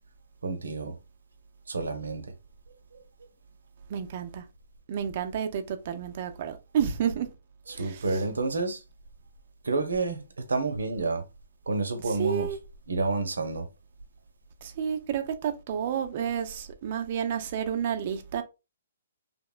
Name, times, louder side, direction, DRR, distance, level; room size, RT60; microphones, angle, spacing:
voice 1, 0.4-1.0 1.7-2.3 7.7-8.8 9.6-11.2 11.7-12.5 12.9-13.7, right 3 dB, 85° right, 0.6 m, -29 dB
voice 2, 3.9-4.4 4.9-7.3 7.8-8.0 12.2-12.6 14.6-18.4, right 8 dB, 45° right, 0.4 m, -30 dB
2.8 x 2.1 x 2.2 m
hypercardioid pair, 145°, 0 cm